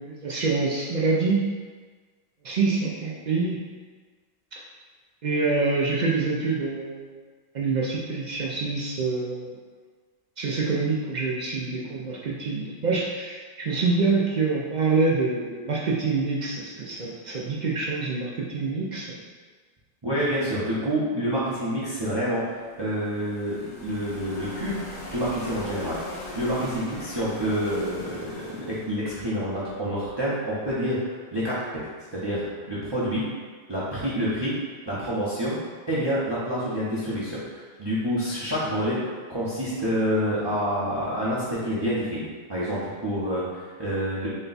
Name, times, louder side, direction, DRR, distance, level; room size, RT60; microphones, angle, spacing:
voice 1, 0.0-1.4 2.4-3.6 4.5-4.6 5.2-7.2 7.5-9.5 10.4-19.2, right 4 dB, 65° right, -4 dB, 0.4 m, -26 dB
voice 2, 20.0-24.7 25.1-26.0 26.3-31.8 32.1-33.2 33.7-34.5 34.9-35.5 35.9-39.0 39.3-44.3, equal, 25° right, -9 dB, 0.6 m, -28 dB
sound 1, 22.4-30.5, left 2 dB, 50° left, 0.9 m, -41 dB
4.2 x 2.2 x 3.9 m, 1.5 s
omnidirectional pair, 1.3 m